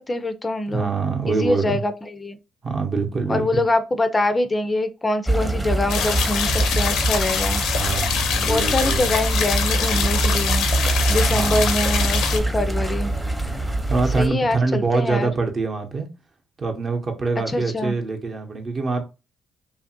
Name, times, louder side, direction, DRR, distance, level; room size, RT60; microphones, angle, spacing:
voice 1, 0.0-0.9 1.3-2.4 3.3-7.6 8.5-10.7 11.1-13.1 14.2-15.3 17.5-17.9, left 2 dB, 25° left, 0.4 m, -24 dB
voice 2, 0.7-1.8 2.6-3.4 7.7-9.1 11.3-11.7 13.6-16.1 16.6-19.0, right 4 dB, 45° right, 0.7 m, -25 dB
sound 1, 5.3-14.3, right 2 dB, 5° right, 0.7 m, -24 dB
sound 2, 5.9-12.4, left 7 dB, 90° left, 0.5 m, -24 dB
2.8 x 2.5 x 2.6 m
cardioid pair, 90°, 0 cm